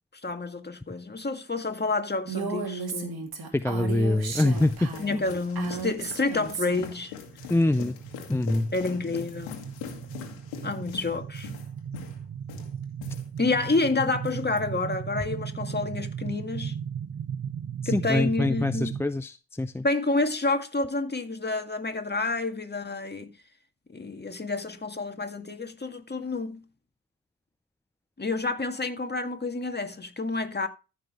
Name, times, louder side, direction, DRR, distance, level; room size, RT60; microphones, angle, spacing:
voice 1, 0.2-3.3 5.0-7.1 8.7-9.6 10.6-11.5 13.4-16.8 17.9-18.9 19.8-23.3 23.9-26.6 28.2-30.7, left 3 dB, 25° left, 2.0 m, -29 dB
Female speech woman speaking, 2.3-6.9, right 5 dB, 55° right, 2.9 m, -34 dB
voice 2, 3.5-5.2 7.5-8.0 8.3-8.7 17.8-19.8, left 2 dB, 5° left, 0.5 m, -25 dB
sound 1, 4.1-13.9 14.2-14.6, left 8 dB, 85° left, 1.7 m, -43 dB
sound 2, 6.5-19.0, right 8 dB, 35° right, 0.7 m, -36 dB
14.5 x 5.7 x 3.0 m
hypercardioid pair, 40°, 43 cm